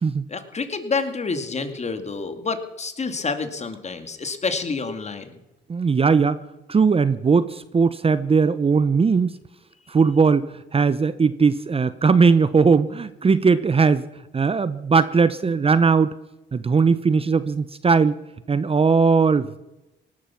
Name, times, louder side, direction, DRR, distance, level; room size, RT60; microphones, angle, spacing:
voice 1, 0.3-5.3, left 4 dB, 35° left, 8 dB, 2.3 m, -28 dB
voice 2, 5.7-6.4 6.7-9.4 9.9-10.4 10.7-14.1 14.3-16.1 16.5-18.1 18.5-19.6, right 5 dB, 30° right, 15 dB, 0.7 m, -19 dB
18.5 x 13.0 x 5.9 m, 0.96 s
cardioid pair, 90°, 20 cm